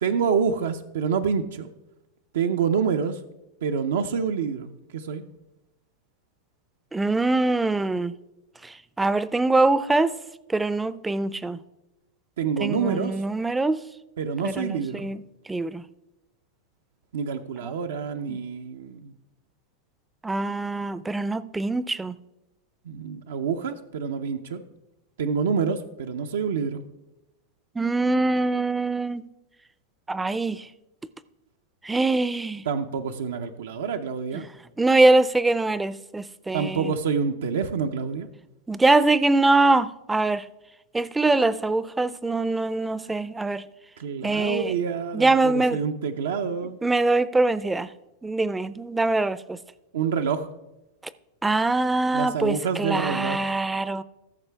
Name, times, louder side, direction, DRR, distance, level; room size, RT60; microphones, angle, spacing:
voice 1, 0.0-1.7 2.3-3.2 3.6-5.2 12.4-13.2 14.2-15.1 17.1-19.1 22.8-24.6 25.2-26.8 32.7-34.5 36.5-38.3 44.0-46.8 49.9-50.5 52.1-53.4, right 6 dB, 85° right, 0.5 m, -27 dB
voice 2, 6.9-8.1 8.6-10.1 10.5-11.6 12.6-13.8 14.4-15.2 15.5-15.8 17.6-17.7 18.3-18.4 20.2-22.2 27.8-29.2 30.1-30.6 31.8-32.6 34.8-36.9 38.7-40.4 40.9-43.6 44.2-44.7 45.1-45.8 46.8-47.9 48.2-49.6 51.4-54.0, right 2 dB, 10° right, 0.4 m, -23 dB
14.5 x 6.6 x 3.4 m
hypercardioid pair, 120°, 0 cm